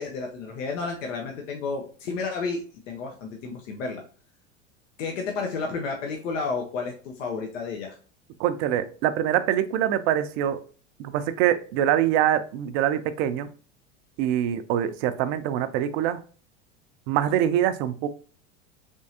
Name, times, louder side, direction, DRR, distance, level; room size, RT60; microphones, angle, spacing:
voice 1, 0.0-4.0 5.0-8.0, left 4 dB, 75° left, 2 dB, 0.8 m, -31 dB
voice 2, 8.4-10.6 11.0-13.5 14.2-16.2 17.1-18.1, right 11 dB, 55° right, 11 dB, 0.5 m, -24 dB
3.5 x 3.1 x 2.7 m, 0.40 s
hypercardioid pair, 90°, 38 cm